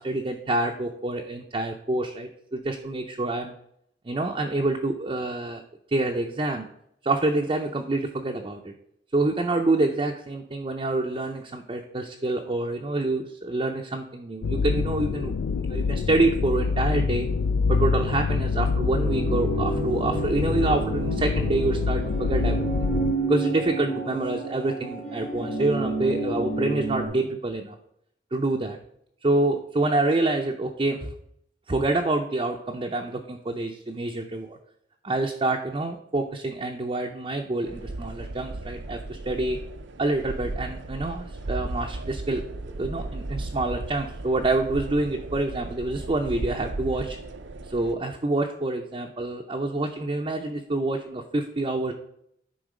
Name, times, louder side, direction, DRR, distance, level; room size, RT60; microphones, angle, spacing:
voice 1, 0.0-3.5 4.1-5.6 5.9-6.7 7.0-8.7 9.1-17.3 17.7-22.7 23.3-27.7 28.3-28.8 29.2-31.1 31.7-34.6 35.0-39.6 40.0-42.4 42.8-47.2 47.7-51.9, right 2 dB, 30° right, 2 dB, 0.5 m, -27 dB
sound 1, 14.4-23.1, left 5 dB, 85° left, 0.3 m, -26 dB
sound 2, 19.0-27.1, right 3 dB, 60° left, 2.7 m, -30 dB
sound 3, 37.7-47.9, right 2 dB, 75° right, 0.6 m, -36 dB
10.0 x 3.9 x 5.0 m, 0.74 s
head